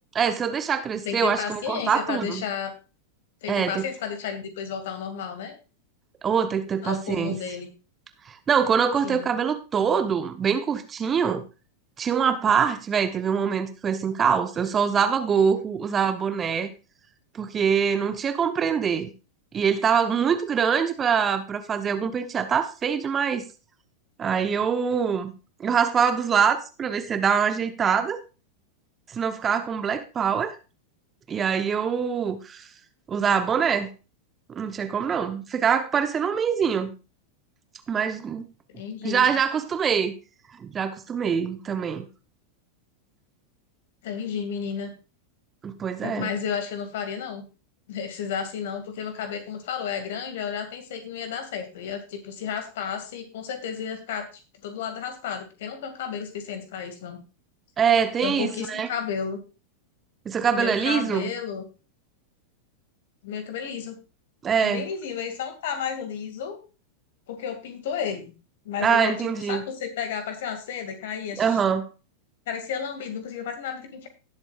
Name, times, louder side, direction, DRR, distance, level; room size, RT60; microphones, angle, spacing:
voice 1, 0.1-2.4 3.5-3.8 6.2-7.4 8.3-11.4 12.0-16.7 17.3-19.1 19.5-23.5 24.2-25.3 25.6-28.2 29.1-30.5 31.3-32.7 33.1-33.9 34.5-36.9 37.9-38.4 39.0-40.1 40.6-42.1 45.6-46.3 57.8-58.9 60.2-61.3 64.4-64.8 68.8-69.6 71.4-71.9, right 7 dB, 20° right, 1.0 m, -24 dB
voice 2, 1.0-2.7 3.4-5.5 6.8-7.7 9.0-9.3 38.7-39.3 44.0-44.9 46.0-47.5 47.9-54.3 54.6-57.2 58.2-59.4 60.5-61.6 63.2-64.0 64.6-66.6 67.3-68.3 68.6-69.2 69.5-71.6 72.5-74.1, left 7 dB, 55° left, 2.3 m, -32 dB
18.0 x 7.8 x 2.5 m
figure-of-eight pair, 90°, 0 cm